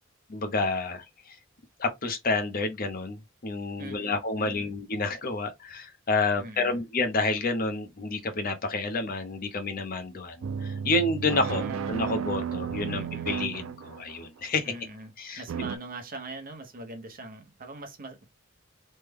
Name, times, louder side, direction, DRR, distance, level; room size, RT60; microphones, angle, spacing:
voice 1, 0.3-1.0 1.8-14.7 15.2-15.7, left 3 dB, 45° left, 0.6 m, -29 dB
voice 2, 3.8-4.7 6.4-6.8 11.4-11.8 12.8-13.3 14.6-18.3, right 2 dB, 45° right, 0.8 m, -42 dB
sound 1, 10.4-14.4 15.5-15.8, right 7 dB, 70° right, 0.3 m, -33 dB
3.2 x 2.1 x 3.5 m
head